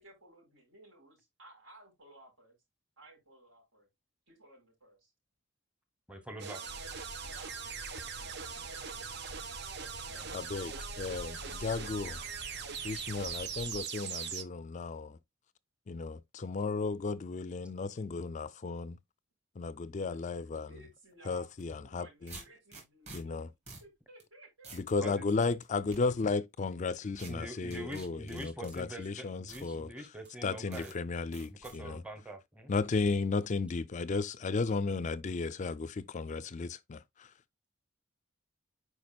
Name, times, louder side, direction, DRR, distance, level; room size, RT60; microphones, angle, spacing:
voice 1, 0.0-2.6 3.0-3.9 4.3-5.1 7.2-7.6 7.9-9.1 20.1-23.5 23.8-24.8, right 2 dB, 75° right, 4.6 m, -58 dB
voice 2, 6.1-6.6 10.1-10.2 25.0-25.3 27.3-30.9 31.5-32.7, right 1 dB, 5° right, 1.0 m, -44 dB
sound 1, 6.4-14.4, right 7 dB, 60° right, 0.7 m, -41 dB
sound 2, 6.6-13.8, left 3 dB, 85° left, 0.5 m, -49 dB
voice 3, 10.3-12.2 12.8-15.2 15.9-19.0 19.6-20.7 21.3-22.4 23.1-23.5 24.7-29.9 30.4-32.0 32.7-37.3, left 4 dB, 40° left, 0.4 m, -34 dB
sound 3, 21.5-21.6 22.3-23.2 23.7-23.9 24.2-24.3 24.6-24.9 25.4-26.0 27.2-27.3 27.7-28.8 29.5-29.7 30.2-30.3 30.7-30.9 31.3-31.8, right 3 dB, 35° right, 3.4 m, -49 dB
9.5 x 4.8 x 2.3 m
head